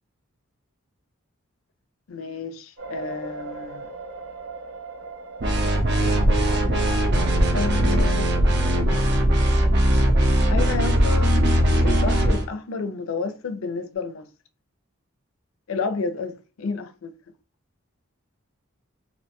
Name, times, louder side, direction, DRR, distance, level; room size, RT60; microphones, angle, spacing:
voice 1, 2.1-3.9 7.5-8.7 10.5-11.4 11.8-14.3 15.7-17.1, left 4 dB, 70° left, 0.4 m, -31 dB
sound 1, 2.8-7.7, right 4 dB, 65° right, 0.8 m, -39 dB
sound 2, 5.4-12.5, equal, 50° right, 0.5 m, -20 dB
2.5 x 2.2 x 2.8 m
head